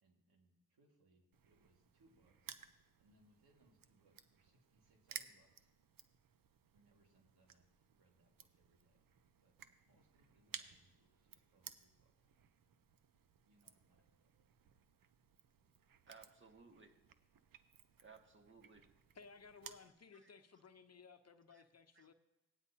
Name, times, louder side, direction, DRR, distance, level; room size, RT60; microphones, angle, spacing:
voice 1, 0.0-2.6 3.0-5.7 6.7-9.1 9.4-9.6 9.8-12.1 13.4-14.3, right 2 dB, 80° right, 1 dB, 2.0 m, -74 dB
Crushing, 1.3-19.9, right 8 dB, 60° right, 0.7 m, -58 dB
voice 2, 16.1-16.9 18.0-18.9 20.1-20.3 21.5-21.6 21.9-22.1, right 4 dB, 30° right, 3 dB, 1.6 m, -61 dB
voice 3, 19.1-22.1, left 5 dB, 40° left, 9 dB, 0.8 m, -59 dB
17.5 x 9.5 x 2.8 m, 0.97 s
cardioid pair, 50°, 37 cm